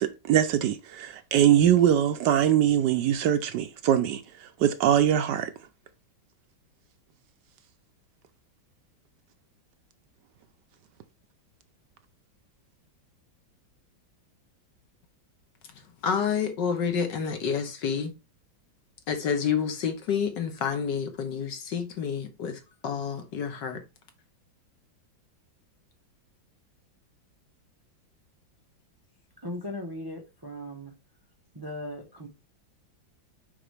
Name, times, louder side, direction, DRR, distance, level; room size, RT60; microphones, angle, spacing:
voice 1, 0.0-5.5, right 10 dB, 75° right, 1.1 m, -22 dB
voice 2, 16.0-18.1 19.1-23.8, left 7 dB, 65° left, 1.7 m, -29 dB
voice 3, 29.4-30.9 31.5-32.3, left 1 dB, 35° right, 0.3 m, -38 dB
5.8 x 5.1 x 3.3 m
omnidirectional pair, 2.1 m